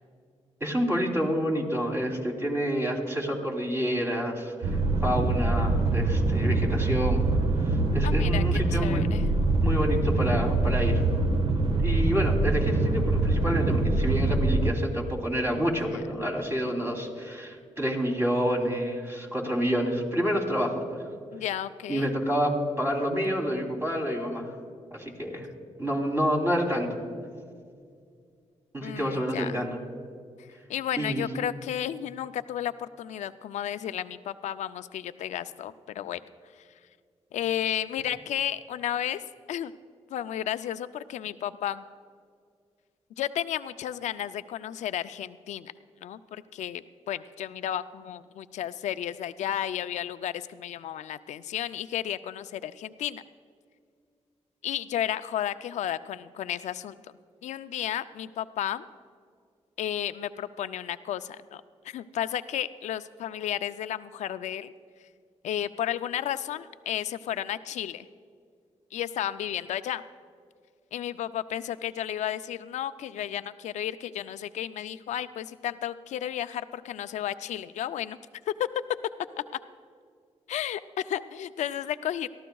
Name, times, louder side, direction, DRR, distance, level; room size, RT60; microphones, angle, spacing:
voice 1, 0.6-7.2 7.9-9.0 9.6-11.0 11.8-21.0 21.9-24.5 24.9-25.5 25.8-27.0 28.7-29.8 31.0-31.3, equal, 20° right, 0 dB, 3.2 m, -28 dB
sound 1, 4.6-14.7, right 2 dB, 55° right, 1.4 m, -24 dB
voice 2, 8.0-9.3 15.5-15.7 15.9-16.0 21.3-22.1 28.8-29.7 30.7-36.2 37.3-39.2 39.5-39.7 40.1-41.8 43.2-45.7 46.0-53.2 54.6-57.0 57.4-58.9 59.8-64.7 65.4-68.1 68.9-70.0 70.9-78.2 78.6-78.7 80.5-82.3, left 11 dB, 85° left, 13 dB, 0.4 m, -33 dB
23.0 x 14.0 x 2.3 m, 2.1 s
cardioid pair, 75°, 12 cm